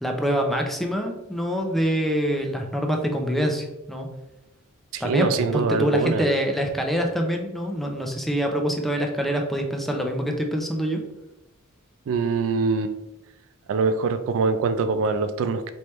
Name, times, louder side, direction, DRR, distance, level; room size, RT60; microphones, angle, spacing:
voice 1, 0.0-4.1 5.0-11.0, equal, ahead, 2 dB, 0.5 m, -25 dB
voice 2, 4.9-6.3 12.1-13.0 13.7-15.7, right 4 dB, 65° right, 10 dB, 0.3 m, -23 dB
4.3 x 3.3 x 3.1 m, 0.93 s
head